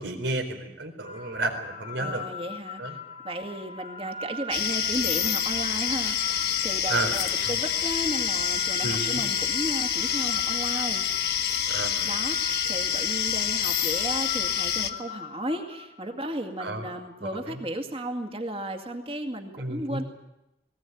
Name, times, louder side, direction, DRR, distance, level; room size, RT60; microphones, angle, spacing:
voice 1, 0.0-2.3 2.8-3.0 6.9-7.1 7.4-7.5 8.8-9.2 11.7-12.1 16.6-17.6 19.6-20.0, right 2 dB, 85° right, 5 dB, 4.2 m, -32 dB
sound 1, 1.0-16.1, left 3 dB, 35° left, 1.6 m, -41 dB
voice 2, 2.0-11.0 12.0-20.0, right 1 dB, 30° right, 5 dB, 2.2 m, -34 dB
sound 2, 4.5-14.9, left 9 dB, 55° left, 1.4 m, -27 dB
19.5 x 19.0 x 9.3 m, 0.92 s
head